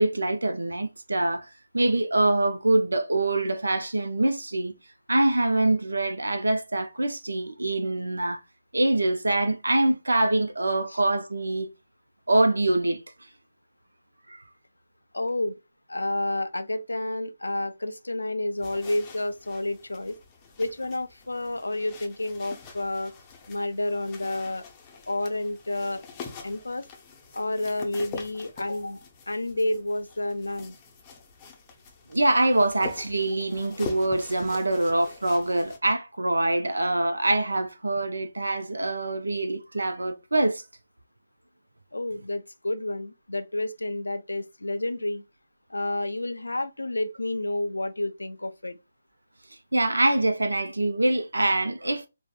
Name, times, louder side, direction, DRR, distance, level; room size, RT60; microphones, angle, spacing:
voice 1, 0.0-1.5 1.7-4.7 5.1-8.4 8.7-11.7 12.3-13.0 14.3-14.4 32.1-40.6 49.7-52.1, right 2 dB, 85° right, 0.4 m, -24 dB
voice 2, 15.1-15.6 15.9-20.2 20.6-23.1 23.5-24.6 25.1-26.1 26.4-26.9 27.3-29.0 29.3-30.8 41.9-45.2 45.7-48.8, left 1 dB, 90° left, 0.3 m, -30 dB
sound 1, 18.6-35.8, left 5 dB, 25° left, 0.5 m, -45 dB
3.4 x 2.0 x 2.2 m
figure-of-eight pair, 150°, 0 cm